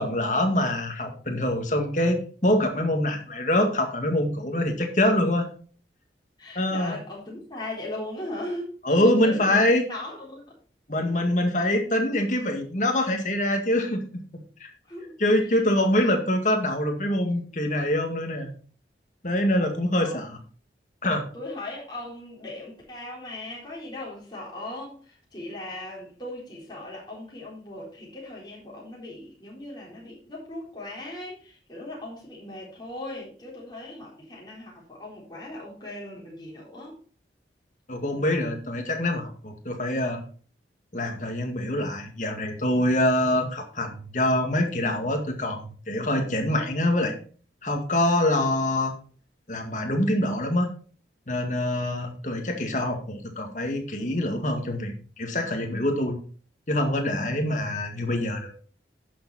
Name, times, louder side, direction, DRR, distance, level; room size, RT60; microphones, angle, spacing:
voice 1, 0.0-5.5 6.6-7.0 8.8-9.9 10.9-14.0 14.6-14.7 15.2-18.5 19.2-20.4 21.0-21.2 37.9-40.2 40.9-47.1 47.6-48.9 49.5-50.7 51.3-56.2 56.7-58.5, left 1 dB, 45° left, 3 dB, 2.0 m, -25 dB
voice 2, 6.4-9.6 9.9-10.6 11.6-11.7 14.8-16.0 20.0-20.3 21.3-37.0, left 1 dB, 25° left, -4 dB, 4.0 m, -38 dB
11.0 x 6.8 x 4.2 m, 0.42 s
head